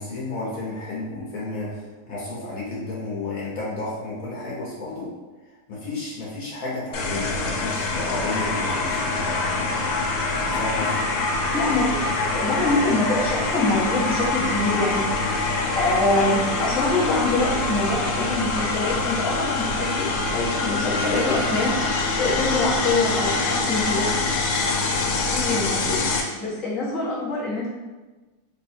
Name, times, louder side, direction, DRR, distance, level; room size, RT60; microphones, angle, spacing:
voice 1, 0.0-5.1 5.4-9.9 10.5-11.1 15.2-15.5, left 2 dB, 55° left, -6 dB, 1.2 m, -32 dB
sound 1, 6.9-26.2, left 3 dB, 90° left, 1.4 m, -25 dB
voice 2, 11.5-24.1 25.3-27.7, left 2 dB, ahead, -9 dB, 0.5 m, -25 dB
3.4 x 2.3 x 4.3 m, 1.2 s
omnidirectional pair, 2.0 m